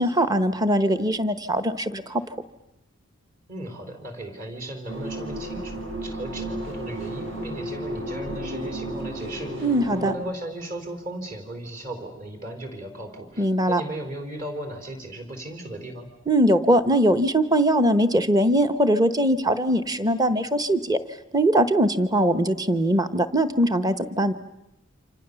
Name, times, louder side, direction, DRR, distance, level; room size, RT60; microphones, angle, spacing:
voice 1, 0.0-2.2 9.6-10.1 13.4-13.8 16.3-21.0 21.3-24.3, right 1 dB, 20° right, 12 dB, 1.0 m, -21 dB
voice 2, 3.5-16.1, right 1 dB, 40° right, 6 dB, 4.5 m, -36 dB
sound 1, 4.9-10.1, right 1 dB, 65° right, 6.9 m, -33 dB
29.0 x 26.0 x 7.0 m, 0.89 s
head